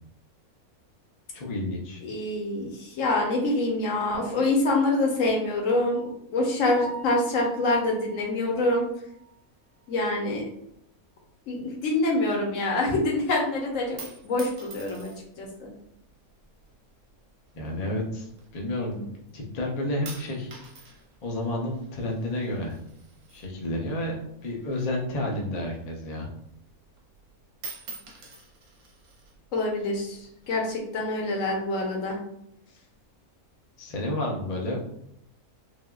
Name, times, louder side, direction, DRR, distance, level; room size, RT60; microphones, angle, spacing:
voice 1, 1.3-2.0 17.5-18.3 18.5-20.5 21.2-22.8 23.3-24.2 24.4-26.3 33.8-34.8, left 1 dB, 80° left, -1 dB, 0.3 m, -30 dB
voice 2, 2.0-6.0 6.3-8.8 9.9-10.4 11.5-15.1 15.4-15.7 29.5-30.2 30.5-32.2, left 2 dB, 65° left, -1 dB, 1.0 m, -26 dB
Piano, 6.8-10.7 11.1-11.2 11.7-11.8 12.2-12.3 15.4-15.5 23.9-24.2, right 3 dB, 40° left, 0.9 m, -46 dB
sound 1, 13.7-15.5 16.3-16.7 17.6-18.9 19.3-19.7 20.1-24.1 24.4-26.1 26.5-26.6 26.9-27.3 27.5-29.4 30.1-30.8, right 3 dB, 60° right, 0.9 m, -46 dB
3.3 x 2.3 x 2.3 m, 0.74 s
omnidirectional pair, 1.6 m